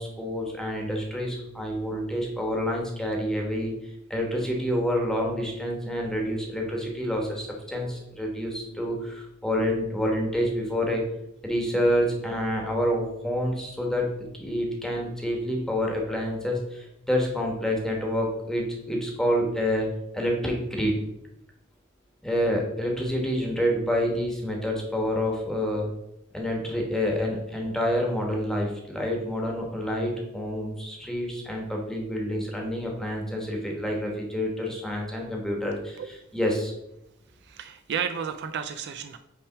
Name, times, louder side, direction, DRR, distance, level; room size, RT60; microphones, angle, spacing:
voice 1, 0.0-11.0 11.4-14.1 14.3-19.9 20.1-21.0 22.2-25.9 26.3-36.0 36.3-36.7, equal, ahead, 0 dB, 1.2 m, -28 dB
voice 2, 37.4-39.2, right 7 dB, 50° right, 9 dB, 0.4 m, -32 dB
5.8 x 3.4 x 5.7 m, 0.83 s
head